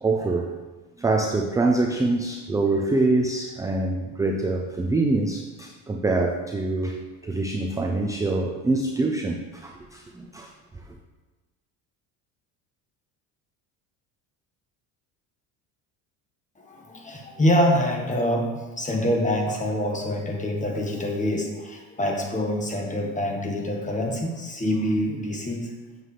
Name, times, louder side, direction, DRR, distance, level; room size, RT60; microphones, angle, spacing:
voice 1, 0.0-0.5 1.0-10.5, right 2 dB, 10° right, 3 dB, 0.3 m, -25 dB
voice 2, 16.6-25.7, equal, 15° left, 1 dB, 1.3 m, -25 dB
7.6 x 6.7 x 3.3 m, 1.2 s
cardioid pair, 110°, 42 cm